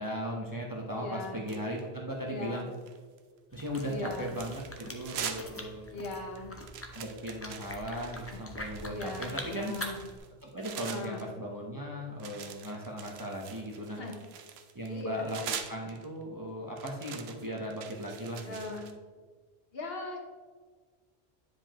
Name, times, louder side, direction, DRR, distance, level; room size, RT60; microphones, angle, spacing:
voice 1, 0.0-2.7 3.5-5.9 6.9-9.7 10.4-14.0 14.7-15.4 15.7-18.8, equal, 20° right, -2 dB, 0.9 m, -37 dB
voice 2, 1.0-1.4 2.2-2.7 3.8-4.4 5.9-6.5 8.3-8.4 8.8-10.0 10.8-11.2 14.0-14.2 14.8-15.3 18.4-18.9 19.7-20.2, left 3 dB, 65° left, 1 dB, 1.3 m, -39 dB
sound 1, 1.5-2.0 2.5-3.2 3.5-5.6 5.9-6.0 6.4-11.2 12.2-16.2 16.8-18.9, right 7 dB, 75° right, 0.9 m, -44 dB
sound 2, 3.5-10.2, left 1 dB, 15° left, 0.6 m, -44 dB
9.5 x 5.1 x 2.9 m, 1.5 s
omnidirectional pair, 1.1 m